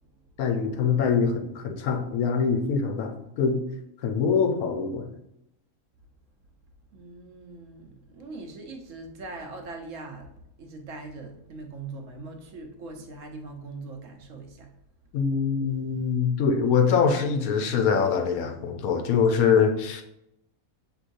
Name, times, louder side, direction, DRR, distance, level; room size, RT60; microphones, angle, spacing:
voice 1, 0.4-3.6 4.0-5.1 15.1-20.0, left 6 dB, 85° left, 6 dB, 1.1 m, -24 dB
voice 2, 6.9-14.7, right 3 dB, 70° right, 3 dB, 1.1 m, -41 dB
6.1 x 3.0 x 2.6 m, 0.80 s
omnidirectional pair, 1.5 m